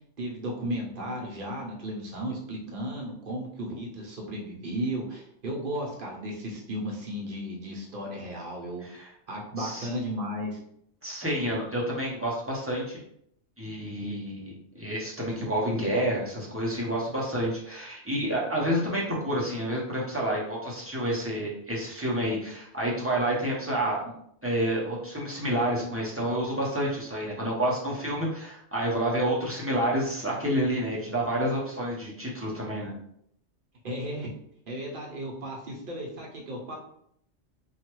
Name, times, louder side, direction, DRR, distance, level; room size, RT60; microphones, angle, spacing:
voice 1, 0.2-8.8 9.3-10.6 33.8-34.3 34.7-36.8, equal, 55° right, -2 dB, 0.9 m, -34 dB
voice 2, 8.8-9.1 9.6-9.9 11.0-13.0 13.6-24.1 24.4-32.9, right 1 dB, 15° right, -6 dB, 0.5 m, -29 dB
3.0 x 2.3 x 3.0 m, 0.71 s
omnidirectional pair, 1.2 m